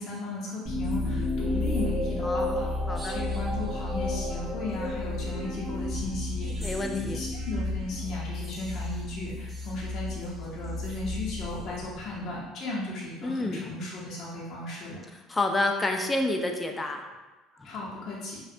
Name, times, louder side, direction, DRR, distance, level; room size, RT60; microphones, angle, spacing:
voice 1, 0.0-2.7 3.0-15.1 17.6-18.4, left 2 dB, 55° left, -5 dB, 0.7 m, -36 dB
sound 1, 0.6-12.2, left 2 dB, 20° right, 0.7 m, -32 dB
voice 2, 2.2-3.2 6.6-7.2 13.2-13.6 15.3-17.1 17.6-17.7, left 2 dB, 20° left, 3 dB, 0.3 m, -29 dB
2.5 x 2.1 x 2.5 m, 1.2 s
supercardioid pair, 80°, 0 cm